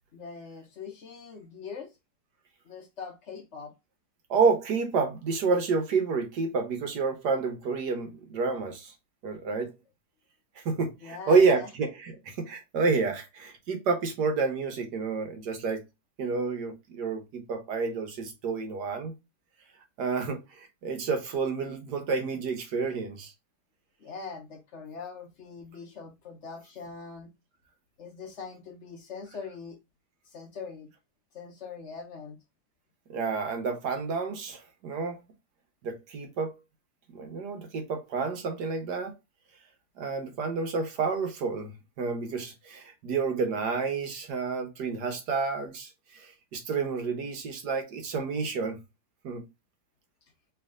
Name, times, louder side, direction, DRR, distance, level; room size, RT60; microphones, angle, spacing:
voice 1, 0.1-1.9 2.6-3.7 11.0-11.7 24.0-27.3 28.0-29.8 30.3-30.9 31.3-32.4, left 5 dB, 55° left, 1.0 m, -42 dB
voice 2, 4.3-8.9 9.2-9.7 10.6-15.8 16.2-19.1 20.0-23.3 33.1-35.2 35.8-36.6 37.1-39.1 40.0-41.7 42.0-48.8 49.2-49.4, right 4 dB, 85° right, 1.7 m, -29 dB
3.4 x 3.4 x 3.5 m
omnidirectional pair, 1.7 m